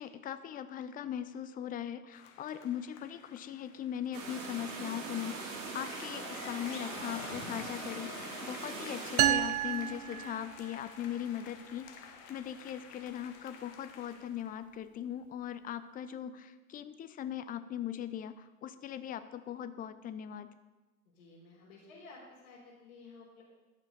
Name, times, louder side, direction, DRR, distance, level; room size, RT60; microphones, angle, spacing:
voice 1, 0.0-20.5, left 10 dB, 20° left, 12 dB, 0.6 m, -40 dB
sound 1, 2.1-4.6 5.5-14.5, left 7 dB, 45° left, 1.5 m, -51 dB
sound 2, 4.1-9.3, right 3 dB, 40° right, 2.9 m, -41 dB
sound 3, 9.2-11.0, right 12 dB, 75° right, 0.6 m, -30 dB
voice 2, 21.1-23.4, left 3 dB, 65° left, -8 dB, 4.1 m, -53 dB
11.5 x 6.8 x 5.3 m, 1.1 s
hypercardioid pair, 95°, 43 cm